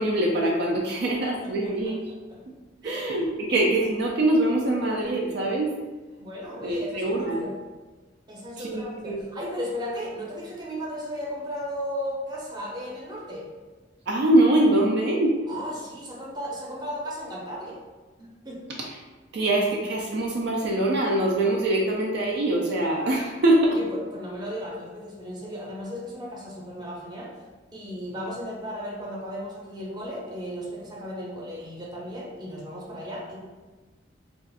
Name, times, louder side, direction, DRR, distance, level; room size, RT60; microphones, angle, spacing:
voice 1, 0.0-2.0 2.8-5.7 6.6-7.5 8.6-9.2 14.1-15.4 18.8-19.0 19.3-23.8, right 1 dB, 60° right, -1 dB, 0.4 m, -23 dB
voice 2, 1.6-1.9 2.3-2.4 2.8-3.2 3.5-3.6 6.2-7.5 8.3-13.5 15.5-17.8 18.2-18.6 23.7-23.8 24.1-27.3 27.7-33.4, equal, 20° right, -4 dB, 0.7 m, -35 dB
2.5 x 2.3 x 3.9 m, 1.3 s
head